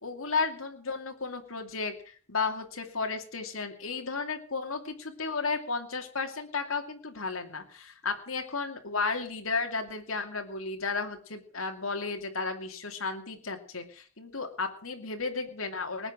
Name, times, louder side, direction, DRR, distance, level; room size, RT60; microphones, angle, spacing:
voice 1, 0.0-16.1, left 4 dB, 85° left, 4 dB, 2.5 m, -33 dB
19.5 x 8.9 x 6.1 m, 0.43 s
head